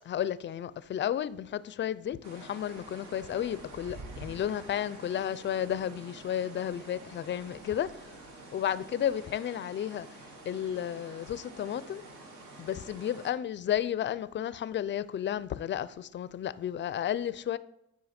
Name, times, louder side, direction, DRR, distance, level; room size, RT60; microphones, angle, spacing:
voice 1, 0.1-7.9 8.5-10.1 10.5-12.0 12.6-17.6, left 10 dB, 40° left, 0.4 m, -32 dB
sound 1, 2.2-13.3, right 2 dB, 75° right, 1.4 m, -48 dB
8.6 x 4.8 x 4.2 m
cardioid pair, 90°, 30 cm